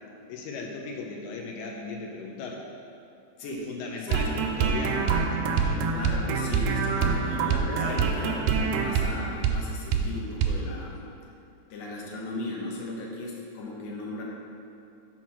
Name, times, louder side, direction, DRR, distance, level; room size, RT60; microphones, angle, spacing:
voice 1, 0.3-2.7 3.7-5.9 6.9-7.2 7.8-8.1, left 4 dB, 90° left, 0 dB, 1.6 m, -37 dB
voice 2, 4.0-4.4 5.8-11.0 11.7-14.2, left 2 dB, 70° left, -2 dB, 1.8 m, -36 dB
sound 1, 4.1-9.6 9.9-10.1 10.4-10.6, right 5 dB, 85° right, 2.2 m, -25 dB
5.9 x 4.6 x 5.6 m, 2.6 s
omnidirectional pair, 4.0 m